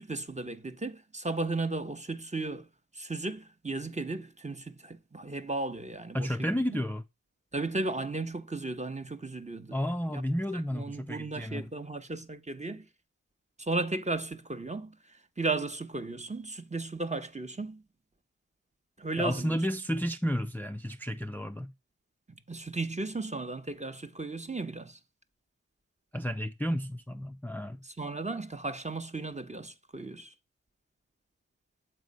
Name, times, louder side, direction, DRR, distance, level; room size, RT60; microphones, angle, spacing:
voice 1, 0.0-2.7 2.9-6.8 7.5-9.8 10.1-10.2 10.5-12.8 13.6-17.8 19.0-19.6 22.5-25.0 27.8-30.3, right 3 dB, 20° right, 0.9 m, -35 dB
voice 2, 6.1-7.0 9.7-11.7 19.2-21.7 26.1-27.8, equal, 5° left, 0.5 m, -32 dB
7.4 x 3.1 x 5.3 m
cardioid pair, 40°, 33 cm